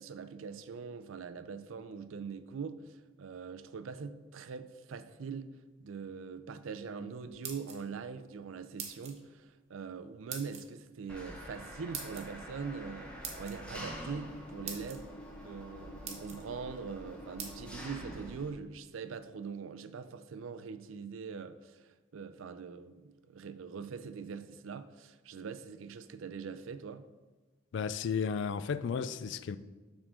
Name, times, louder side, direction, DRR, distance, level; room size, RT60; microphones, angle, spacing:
voice 1, 0.0-5.5 5.8-15.1 15.4-27.1, right 5 dB, 80° right, 0.4 m, -43 dB
sound 1, 7.2-8.1 8.8-9.2 10.3-10.6 11.9-12.3 13.2-13.6 14.3-14.4 14.7-15.0 15.6-15.7 16.0-16.4 17.4-17.5, right 6 dB, 30° right, 0.8 m, -42 dB
Engine, 11.1-18.5, equal, 5° left, 0.7 m, -46 dB
voice 2, 27.7-29.6, left 6 dB, 60° left, 0.3 m, -33 dB
7.2 x 3.7 x 5.0 m
head